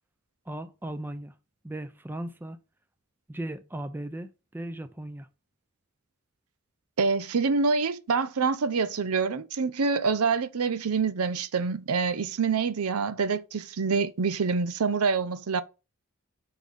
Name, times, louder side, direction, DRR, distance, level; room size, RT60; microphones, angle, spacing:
voice 1, 0.5-1.3 1.6-2.6 3.3-5.3, right 1 dB, 10° right, 0.5 m, -37 dB
voice 2, 7.0-15.6, right 5 dB, 90° right, 0.6 m, -26 dB
6.1 x 3.9 x 5.2 m
head